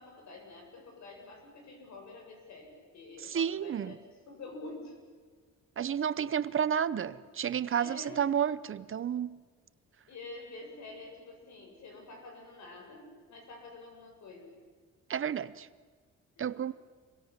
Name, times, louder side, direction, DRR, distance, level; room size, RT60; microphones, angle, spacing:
voice 1, 0.0-5.0 7.8-8.3 10.1-14.6 16.3-16.7, left 2 dB, 70° left, 7.7 m, -48 dB
voice 2, 3.2-3.9 5.8-9.4 15.1-15.7 16.4-16.7, right 8 dB, 45° right, 0.8 m, -31 dB
27.0 x 22.0 x 7.4 m
cardioid pair, 105°, 29 cm